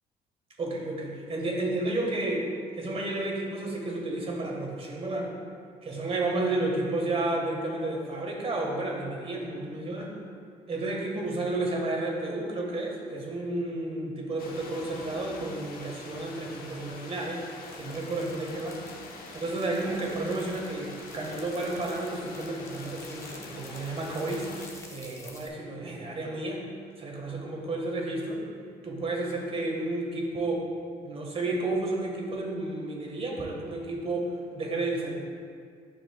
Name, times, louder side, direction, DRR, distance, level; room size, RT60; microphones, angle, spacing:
voice 1, 0.6-2.5 2.8-5.3 5.8-10.2 10.7-17.5 17.7-18.8 19.3-24.5 24.9-26.6 27.0-28.4 28.8-30.7 31.0-35.1, right 2 dB, 40° right, -1 dB, 1.6 m, -31 dB
sound 1, 14.4-24.7, left 3 dB, 70° left, 1.0 m, -45 dB
sound 2, 17.6-25.5, left 2 dB, 20° left, 1.1 m, -51 dB
10.5 x 5.9 x 2.4 m, 2.1 s
cardioid pair, 100°, 16 cm